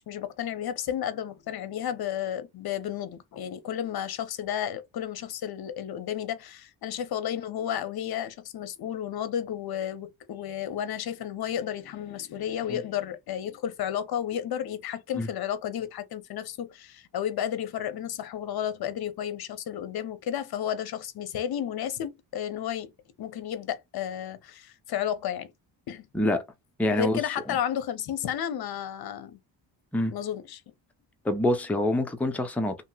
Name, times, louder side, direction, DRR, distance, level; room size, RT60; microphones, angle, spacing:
voice 1, 0.0-22.9 23.2-25.5 25.9-26.1 26.9-29.4 30.1-30.6, left 10 dB, 55° left, 0.7 m, -32 dB
voice 2, 26.8-27.2 29.9-30.1 31.2-32.8, left 1 dB, 5° left, 0.5 m, -25 dB
2.9 x 2.8 x 2.3 m
cardioid pair, 120°, 44 cm